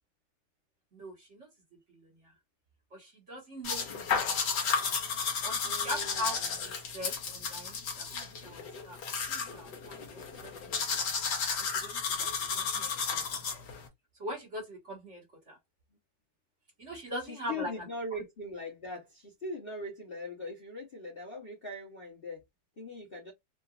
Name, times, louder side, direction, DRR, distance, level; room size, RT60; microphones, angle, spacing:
voice 1, 0.9-2.3 2.9-4.4 5.4-9.0 9.3-11.0 11.6-13.4 14.2-15.6 16.8-17.9, equal, 40° right, 1.6 m, -42 dB
sound 1, 3.6-13.9, left 5 dB, 65° left, 1.5 m, -33 dB
voice 2, 5.6-6.3 12.2-12.6 17.3-22.4 22.8-23.3, left 1 dB, 35° left, 1.1 m, -41 dB
3.8 x 2.5 x 2.4 m
omnidirectional pair, 2.1 m